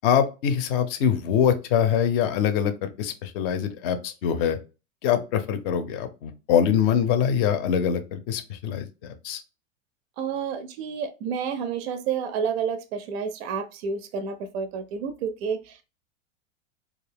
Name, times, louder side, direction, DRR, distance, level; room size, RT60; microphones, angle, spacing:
voice 1, 0.0-4.6 5.0-9.4, left 8 dB, 45° left, 0.5 m, -24 dB
voice 2, 10.2-15.8, right 6 dB, 55° right, 0.4 m, -30 dB
2.4 x 2.3 x 3.2 m
figure-of-eight pair, 90°, 40 cm